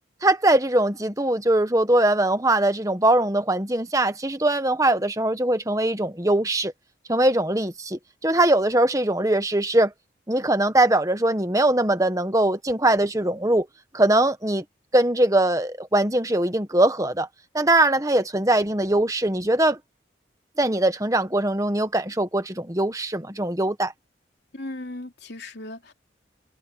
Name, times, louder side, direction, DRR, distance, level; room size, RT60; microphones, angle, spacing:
voice 1, 0.2-6.7 7.1-9.9 10.3-13.7 13.9-14.6 14.9-17.3 17.5-19.8 20.6-23.9, right 1 dB, 15° right, 1.3 m, -21 dB
voice 2, 24.5-25.9, left 1 dB, 65° left, 3.2 m, -37 dB
head